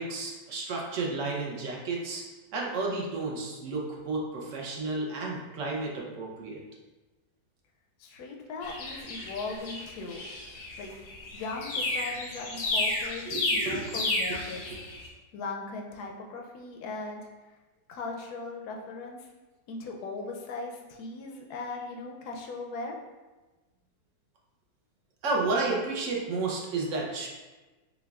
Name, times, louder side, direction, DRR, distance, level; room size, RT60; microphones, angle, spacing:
voice 1, 0.0-2.2 2.5-6.6 13.3-13.8 14.3-14.4 14.7-14.8 25.2-27.3, right 3 dB, 65° right, -2 dB, 0.8 m, -32 dB
voice 2, 8.0-10.2 10.8-10.9 11.3-14.6 15.3-17.3 17.9-19.3 19.7-23.0, left 3 dB, 70° left, 1 dB, 1.0 m, -38 dB
sound 1, 8.6-15.1, left 2 dB, 85° left, 1.4 m, -32 dB
5.7 x 2.2 x 2.3 m, 1.2 s
omnidirectional pair, 1.9 m